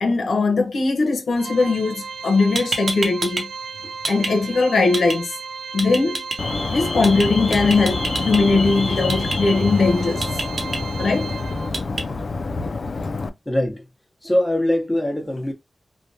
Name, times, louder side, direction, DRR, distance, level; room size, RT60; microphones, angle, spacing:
voice 1, 0.0-3.5 4.1-5.4 5.7-6.2 6.7-10.2 11.0-11.3, left 3 dB, 85° left, 0.7 m, -20 dB
Organ, 1.4-12.0, right 5 dB, 80° right, 0.4 m, -35 dB
sound 1, 2.2-2.3 2.6-3.4 3.7-4.3 4.9-5.2 5.8-6.4 7.0-7.3 7.5-8.4 9.1-9.4 10.2-10.8 11.7-12.0, right 2 dB, 55° right, 0.9 m, -26 dB
Alarm, 6.4-13.3, left 3 dB, 55° left, 0.4 m, -26 dB
voice 2, 13.4-13.9 14.2-15.5, left 1 dB, 15° left, 1.0 m, -22 dB
3.2 x 2.2 x 2.7 m
wide cardioid pair, 85°, 0 cm